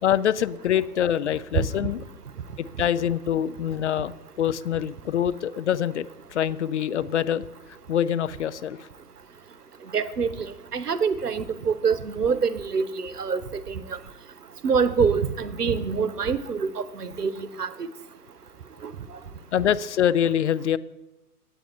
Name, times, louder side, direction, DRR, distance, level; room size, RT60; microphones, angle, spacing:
voice 1, 0.0-2.0 2.6-7.5 7.9-8.9 19.5-20.8, left 10 dB, 50° left, 15 dB, 0.4 m, -25 dB
voice 2, 9.9-10.3 10.7-13.8 14.6-16.7 17.0-17.7, right 5 dB, 85° right, 14 dB, 0.8 m, -25 dB
8.5 x 8.5 x 4.4 m, 0.94 s
figure-of-eight pair, 115°, 46 cm